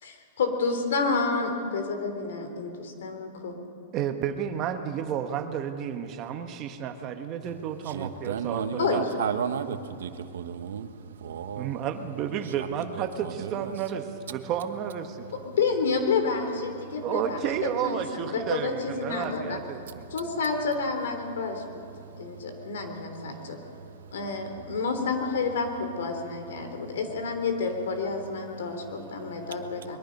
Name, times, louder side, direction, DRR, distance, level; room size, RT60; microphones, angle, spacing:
voice 1, 0.0-3.6 8.8-9.0 15.3-19.6 20.1-21.6 22.2-23.6 24.1-30.0, left 4 dB, 85° left, 3.5 m, -29 dB
voice 2, 3.9-8.6 8.9-9.3 11.6-15.3 17.0-20.0, right 9 dB, 25° right, 1.1 m, -32 dB
voice 3, 7.8-11.9 12.4-13.7 15.2-15.4 16.8-17.0 19.8-20.1 21.9-24.3 24.7-24.8 26.5-27.0 28.6-28.8 29.1-29.5, right 7 dB, 85° right, 1.2 m, -36 dB
23.5 x 22.0 x 5.4 m
supercardioid pair, 175°, 0 cm